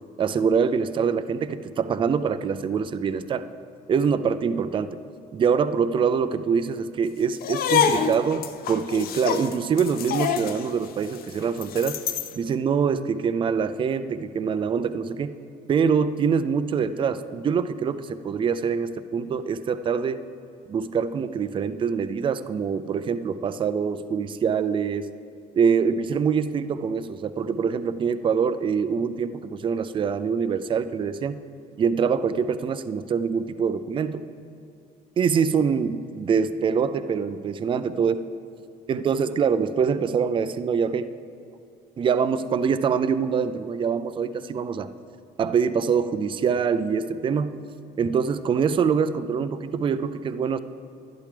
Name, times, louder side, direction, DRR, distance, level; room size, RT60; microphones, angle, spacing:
voice 1, 0.2-3.5 3.9-5.0 5.3-12.0 12.4-15.4 15.7-20.2 20.7-25.1 25.5-31.4 31.8-34.3 35.2-38.2 38.9-41.1 42.0-44.9 45.4-47.6 48.0-50.6, right 6 dB, 30° right, 12 dB, 0.4 m, -24 dB
sound 1, 7.4-12.4, left 8 dB, 60° left, 0.5 m, -27 dB
11.5 x 10.5 x 3.4 m, 2.6 s
cardioid pair, 110°, 17 cm